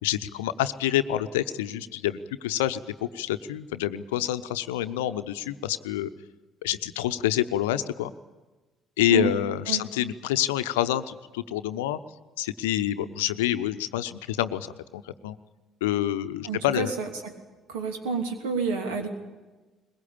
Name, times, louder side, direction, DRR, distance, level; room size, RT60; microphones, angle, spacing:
voice 1, 0.0-2.8 3.1-6.1 6.6-8.1 9.0-12.0 12.4-14.7 14.9-15.3 15.8-16.9, left 13 dB, 70° left, 12 dB, 0.8 m, -27 dB
voice 2, 16.4-17.3 17.7-19.1, right 5 dB, 70° right, 4 dB, 2.9 m, -29 dB
22.0 x 21.0 x 8.7 m, 1.2 s
figure-of-eight pair, 50°, 0 cm